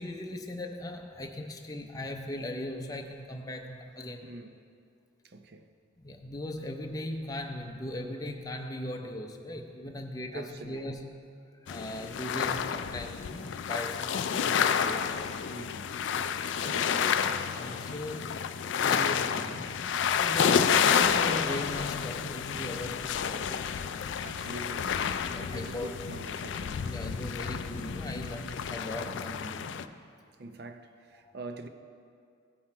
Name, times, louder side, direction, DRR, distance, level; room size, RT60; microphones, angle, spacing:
voice 1, 0.0-4.2 6.0-11.1 11.6-15.2 17.6-23.7 25.2-25.9 26.8-30.0 31.2-31.3, left 1 dB, 20° left, 0.5 m, -39 dB
voice 2, 4.2-4.7 5.2-5.7 10.3-11.0 15.5-15.9 16.6-17.2 17.6-17.9 24.2-26.9 30.4-31.7, right 2 dB, 55° right, 0.6 m, -45 dB
sound 1, 11.7-29.8, left 7 dB, 75° left, 0.4 m, -30 dB
15.5 x 5.6 x 4.4 m
head